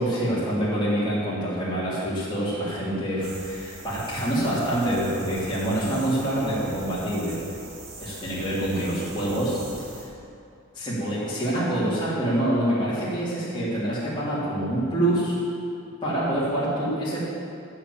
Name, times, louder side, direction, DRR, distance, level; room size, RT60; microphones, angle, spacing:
voice 1, 0.0-7.5 8.0-9.6 10.7-15.4 16.0-17.2, right 1 dB, 20° left, -11 dB, 3.2 m, -26 dB
sound 1, 3.2-10.0, right 2 dB, 90° right, 3.1 m, -42 dB
13.0 x 6.0 x 8.8 m, 2.5 s
head